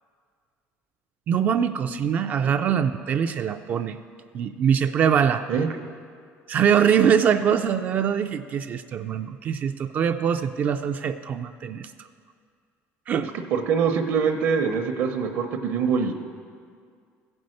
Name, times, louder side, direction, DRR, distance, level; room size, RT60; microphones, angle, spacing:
voice 1, 1.3-4.0 4.3-5.4 6.5-12.1 13.1-13.3, right 8 dB, 35° right, 9 dB, 0.3 m, -23 dB
voice 2, 13.3-16.1, right 6 dB, 55° right, 4 dB, 0.8 m, -24 dB
15.0 x 5.4 x 7.6 m, 2.1 s
cardioid pair, 180°, 5 cm